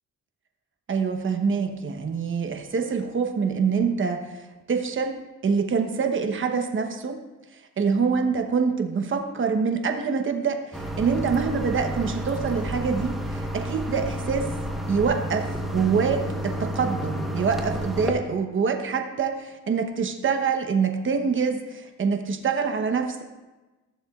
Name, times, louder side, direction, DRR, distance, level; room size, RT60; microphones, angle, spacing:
voice 1, 0.9-7.2 7.8-14.5 14.9-23.2, right 5 dB, 40° right, 5 dB, 1.1 m, -25 dB
sound 1, 10.7-18.1, equal, ahead, 1.1 m, -30 dB
14.0 x 7.2 x 2.5 m, 1.2 s
cardioid pair, 90°, 30 cm